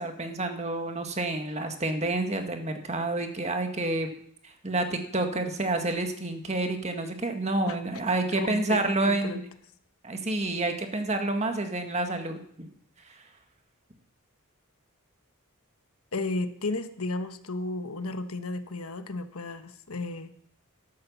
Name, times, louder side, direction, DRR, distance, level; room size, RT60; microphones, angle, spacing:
voice 1, 0.0-4.1 4.4-9.4 10.0-12.7, right 2 dB, 30° right, 5 dB, 1.7 m, -29 dB
voice 2, 8.3-9.4 16.1-20.3, left 2 dB, 80° left, 9 dB, 1.2 m, -33 dB
12.5 x 11.5 x 7.1 m, 0.67 s
head